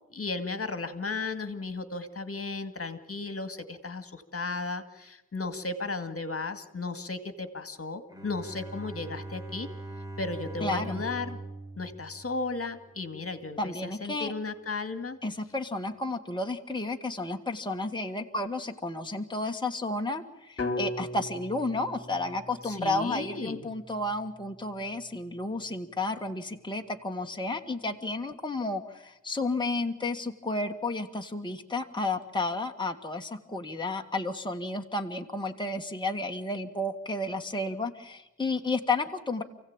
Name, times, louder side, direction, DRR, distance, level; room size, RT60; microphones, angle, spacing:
voice 1, 0.1-9.7 10.2-11.4 11.8-15.2 22.6-23.7, left 3 dB, 50° left, 10 dB, 2.2 m, -35 dB
Bowed string instrument, 8.1-13.1, right 2 dB, 10° right, 3.3 m, -41 dB
voice 2, 10.6-11.0 13.6-14.3 15.2-39.4, left 2 dB, 15° left, 2 dB, 1.7 m, -32 dB
sound 1, 20.6-24.6, left 1 dB, 35° left, 3.9 m, -38 dB
29.0 x 16.5 x 8.8 m, 0.94 s
wide cardioid pair, 85°, 30 cm